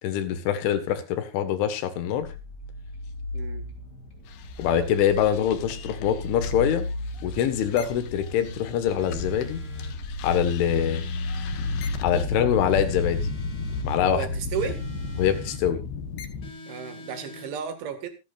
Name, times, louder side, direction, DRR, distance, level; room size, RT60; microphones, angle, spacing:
voice 1, 0.0-2.3 4.6-6.8 7.2-9.6 10.2-11.0 12.0-13.3 13.8-14.3 15.2-15.8, left 9 dB, 85° left, 9 dB, 4.0 m, -24 dB
sound 1, 2.2-15.3, left 2 dB, 25° left, 3.3 m, -33 dB
voice 2, 3.3-3.7 14.1-14.8 16.7-18.1, right 7 dB, 80° right, 8 dB, 4.4 m, -33 dB
sound 2, 4.3-9.5 9.8-16.5, left 5 dB, 70° left, 3.1 m, -37 dB
sound 3, 9.0-10.0 10.7-11.9 12.7-13.9 14.5-15.6 16.4-17.5, left 2 dB, 45° left, 1.9 m, -41 dB
26.0 x 9.3 x 2.5 m, 0.27 s
omnidirectional pair, 5.4 m